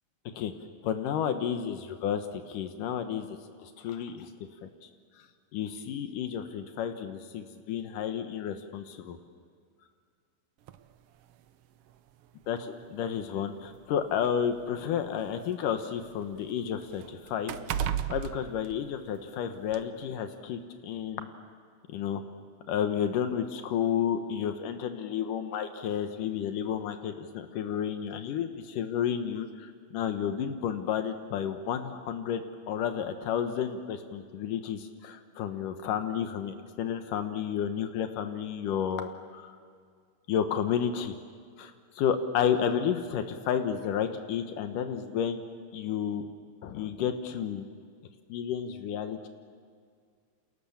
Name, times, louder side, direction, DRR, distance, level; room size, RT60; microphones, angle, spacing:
voice 1, 0.8-3.3 3.6-4.3 4.6-4.7 5.5-9.2 12.5-21.3 21.9-22.2 22.7-39.6 40.3-41.1 41.6-45.4 45.7-46.3 46.6-47.7 48.3-49.3, left 8 dB, 85° left, 7 dB, 2.8 m, -31 dB
sound 1, 10.7-10.8 11.9-12.0 12.4-12.6 13.5-15.5 15.9-19.3 19.7-19.8, right 9 dB, 70° right, 1.4 m, -36 dB
29.5 x 28.0 x 7.2 m, 2.1 s
omnidirectional pair, 3.6 m